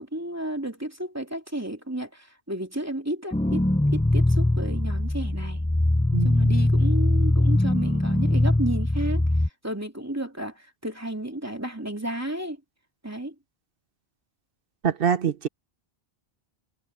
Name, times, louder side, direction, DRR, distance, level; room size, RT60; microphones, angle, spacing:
voice 1, 0.0-3.7 3.9-5.6 6.2-9.2 9.6-12.6 13.0-13.3, right 1 dB, 15° right, 2.8 m, -32 dB
sound 1, 3.3-9.5, left 1 dB, 5° left, 0.7 m, -22 dB
voice 2, 6.1-6.6 14.8-15.5, right 7 dB, 65° right, 1.1 m, -25 dB
omnidirectional pair, 1.1 m